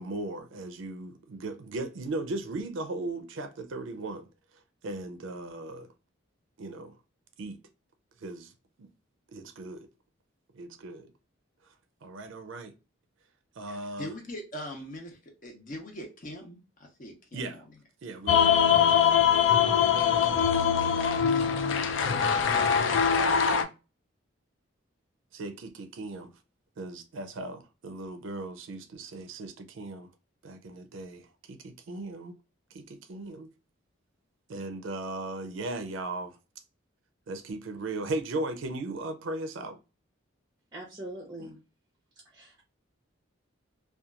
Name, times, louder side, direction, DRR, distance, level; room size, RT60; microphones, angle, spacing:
voice 1, 0.0-4.3 4.8-5.9 6.6-7.0 7.4-7.6 8.2-8.5 8.8-8.9 9.3-9.9 10.5-11.1 12.0-12.7 13.6-14.1 17.3-17.6 18.0-18.6 25.3-26.3 26.8-30.1 30.4-32.4 32.7-33.5 34.5-36.4 37.3-39.8, right 2 dB, 70° right, 0.4 m, -37 dB
voice 2, 13.7-17.6, equal, 40° left, 0.7 m, -42 dB
sound 1, 18.3-23.6, left 7 dB, 65° left, 0.4 m, -23 dB
voice 3, 40.7-41.6 42.3-42.6, right 1 dB, 20° right, 0.6 m, -42 dB
2.8 x 2.3 x 2.3 m
head